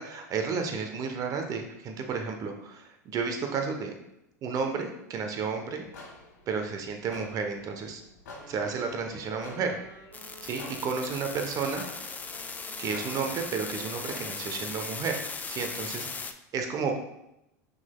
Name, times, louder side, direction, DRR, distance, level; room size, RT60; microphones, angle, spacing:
voice 1, 0.0-3.9 4.4-5.9 6.5-8.0 8.5-9.8 10.5-11.8 12.8-15.2 15.5-16.1 16.5-17.0, right 5 dB, 40° right, 4 dB, 0.8 m, -32 dB
sound 1, 5.8-14.8, left 2 dB, 75° left, 1.3 m, -50 dB
Wind instrument woodwind instrument, 8.3-15.5, right 1 dB, 85° right, 1.1 m, -50 dB
sound 2, 10.1-16.3, left 4 dB, 15° left, 0.4 m, -38 dB
5.9 x 4.0 x 2.2 m, 0.84 s
hypercardioid pair, 85°, 9 cm